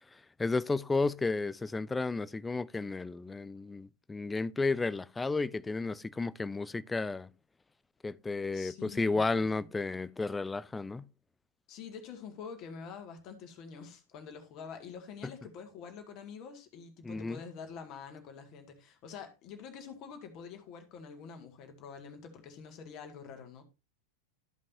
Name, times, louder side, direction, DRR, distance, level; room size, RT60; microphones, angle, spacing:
voice 1, 0.4-7.3 8.0-11.0 17.0-17.4, left 3 dB, 10° left, 0.4 m, -32 dB
voice 2, 8.5-9.7 11.7-23.6, left 6 dB, 40° left, 2.1 m, -47 dB
14.0 x 5.3 x 2.7 m
figure-of-eight pair, 90°, 0 cm